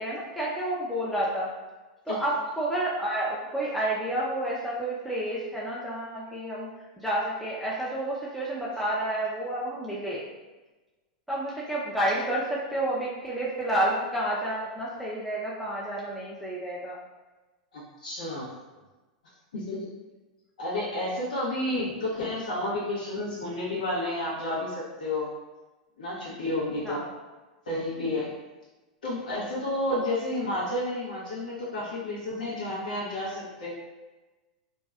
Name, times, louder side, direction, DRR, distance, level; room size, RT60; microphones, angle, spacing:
voice 1, 0.0-1.5 2.1-6.7 7.0-10.2 11.3-17.0 26.8-27.1, right 1 dB, ahead, -6 dB, 0.5 m, -30 dB
voice 2, 17.7-18.5 19.5-19.8 20.6-25.3 26.0-27.0 27.7-28.3 29.0-33.7, left 1 dB, 85° left, -8 dB, 0.9 m, -31 dB
3.0 x 2.6 x 2.4 m, 1.2 s
hypercardioid pair, 110°, 4 cm